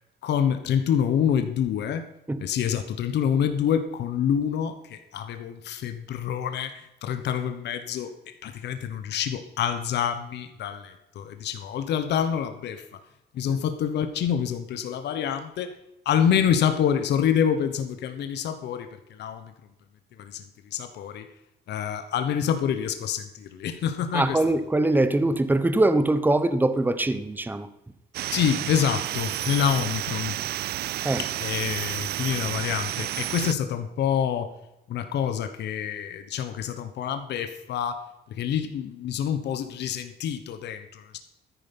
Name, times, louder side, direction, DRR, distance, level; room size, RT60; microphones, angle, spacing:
voice 1, 0.2-2.1 2.4-8.1 8.4-12.8 13.3-15.7 16.0-19.5 20.2-20.5 20.7-21.3 21.7-24.4 28.3-30.4 31.2-34.5 34.9-38.0 38.3-41.2, left 8 dB, 70° left, 9 dB, 1.3 m, -27 dB
voice 2, 24.1-27.7 31.0-31.3, right 2 dB, 10° right, 12 dB, 1.0 m, -23 dB
sound 1, 28.1-33.5, right 14 dB, 60° right, 0.4 m, -31 dB
13.5 x 10.5 x 5.5 m, 0.88 s
cardioid pair, 135°, 18 cm